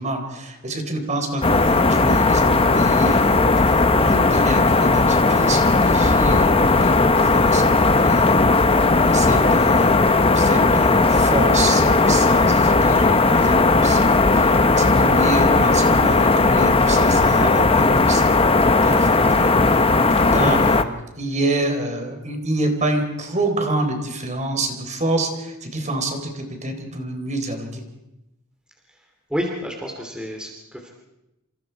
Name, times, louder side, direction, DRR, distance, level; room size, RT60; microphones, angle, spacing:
voice 1, 0.0-10.0 10.3-27.8, right 2 dB, 35° right, 5 dB, 3.9 m, -27 dB
sound 1, 1.4-20.8, left 3 dB, 25° left, 0.9 m, -16 dB
voice 2, 29.3-30.9, equal, 5° right, 1 dB, 2.7 m, -29 dB
28.0 x 26.5 x 4.6 m, 0.92 s
head